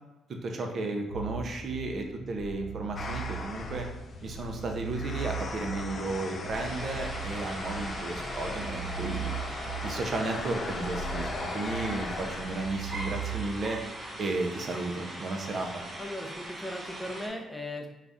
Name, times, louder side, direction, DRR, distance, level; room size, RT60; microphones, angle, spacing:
voice 1, 0.4-3.9 4.2-9.3 9.8-13.8 14.2-15.8, right 2 dB, 50° right, 3 dB, 0.5 m, -33 dB
sound 1, 1.1-13.6, right 6 dB, 80° left, 0.6 m, -39 dB
sound 2, 3.0-12.7, left 3 dB, 45° left, 0.4 m, -39 dB
sound 3, 6.5-17.3, right 1 dB, 20° right, 0.9 m, -41 dB
voice 2, 16.0-17.9, left 1 dB, 5° left, 2 dB, 0.6 m, -37 dB
3.9 x 2.4 x 3.4 m, 1.0 s
cardioid pair, 90°, 0 cm